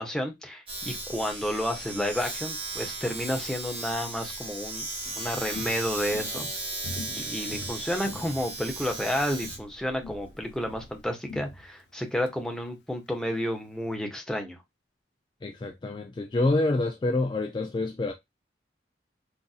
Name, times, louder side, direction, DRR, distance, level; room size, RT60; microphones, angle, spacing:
voice 1, 0.0-4.9 5.2-6.5 7.1-14.6, equal, 5° left, 0.7 m, -31 dB
Domestic sounds home sounds, 0.7-11.1, right 2 dB, 30° right, 1.6 m, -36 dB
Walk footsteps, 4.8-9.1 9.4-9.7 10.0-12.3 12.6-12.7, left 2 dB, 80° left, 0.7 m, -43 dB
voice 2, 15.4-18.1, left 2 dB, 25° left, 0.3 m, -27 dB
3.9 x 2.6 x 2.3 m
head